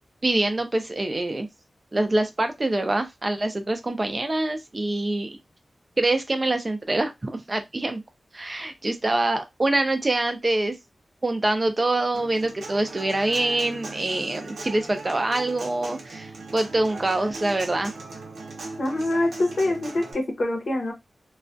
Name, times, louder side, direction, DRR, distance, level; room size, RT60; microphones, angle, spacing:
voice 1, 0.2-1.5 1.9-5.4 6.0-8.0 8.3-10.8 11.2-17.9, right 2 dB, 25° right, 0.3 m, -25 dB
Human voice / Acoustic guitar, 12.1-20.1, right 3 dB, 80° right, 0.7 m, -39 dB
voice 2, 18.8-20.9, left 1 dB, 60° left, 0.7 m, -25 dB
2.3 x 2.1 x 2.5 m
wide cardioid pair, 145°, 0 cm